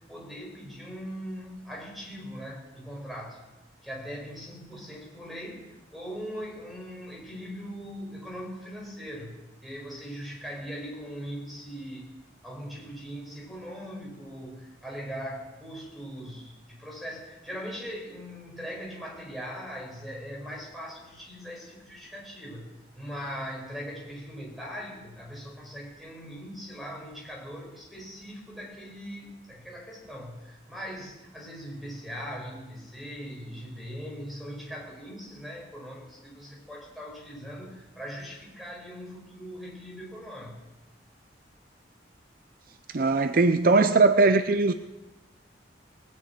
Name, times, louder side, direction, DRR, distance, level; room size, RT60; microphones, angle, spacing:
voice 1, 0.1-3.4 3.8-12.1 12.4-40.6, equal, ahead, -3 dB, 4.7 m, -40 dB
voice 2, 42.9-44.7, right 3 dB, 50° right, 10 dB, 0.5 m, -20 dB
19.5 x 6.8 x 9.3 m, 1.0 s
head